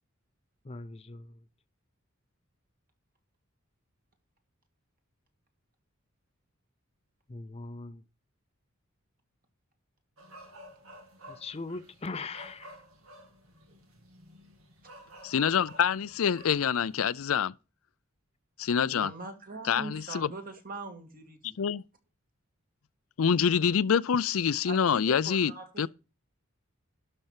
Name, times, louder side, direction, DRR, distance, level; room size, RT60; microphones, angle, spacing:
voice 1, 0.7-1.2 7.3-8.0 11.4-12.7, left 3 dB, 30° left, 0.6 m, -39 dB
sound 1, 10.2-17.1, right 1 dB, 85° right, 2.9 m, -52 dB
voice 2, 15.2-17.5 18.6-19.1 19.7-20.3 21.6-21.8 23.2-25.5 25.8-25.9, left 7 dB, 80° left, 0.5 m, -26 dB
voice 3, 18.8-21.7 24.6-25.9, right 3 dB, 45° right, 2.5 m, -42 dB
12.0 x 4.4 x 7.4 m
head